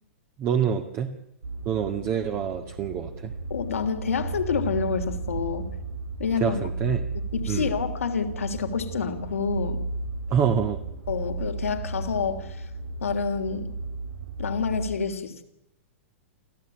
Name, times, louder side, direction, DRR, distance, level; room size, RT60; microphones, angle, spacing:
voice 1, 0.4-1.1 1.7-3.3 6.4-7.1 7.5-7.7 10.3-10.8, right 7 dB, 35° right, 5 dB, 1.9 m, -26 dB
sound 1, 1.4-14.9, right 3 dB, 80° right, 2.9 m, -34 dB
voice 2, 3.5-5.7 6.2-6.6 7.3-9.8 11.1-12.6 13.0-13.7 14.4-15.4, left 6 dB, 90° left, 8 dB, 3.2 m, -28 dB
28.0 x 14.5 x 9.0 m, 0.87 s
hypercardioid pair, 125°, 7 cm